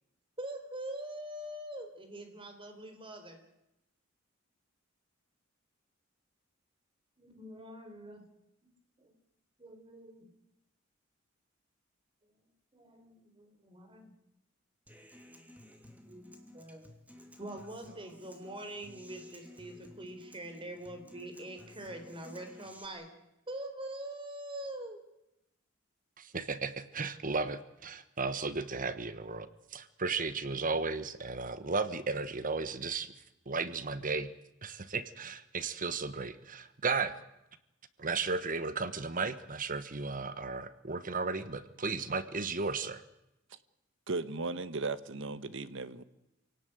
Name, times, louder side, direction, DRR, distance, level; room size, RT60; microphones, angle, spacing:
voice 1, 0.4-3.4 7.2-8.2 8.6-8.7 9.0-9.1 9.6-10.3 12.7-14.1 16.0-16.3 16.5-16.9 17.4-23.1 23.5-25.0, right 1 dB, 25° right, 6 dB, 4.1 m, -44 dB
Human voice / Acoustic guitar, 14.9-22.9, equal, 10° right, 2.8 m, -55 dB
voice 2, 26.2-33.1 33.5-34.3 34.6-37.2 38.0-43.0, right 4 dB, 40° right, 13 dB, 1.2 m, -35 dB
voice 3, 44.1-46.0, right 3 dB, 65° right, 14 dB, 1.2 m, -36 dB
27.5 x 18.0 x 9.2 m, 0.90 s
head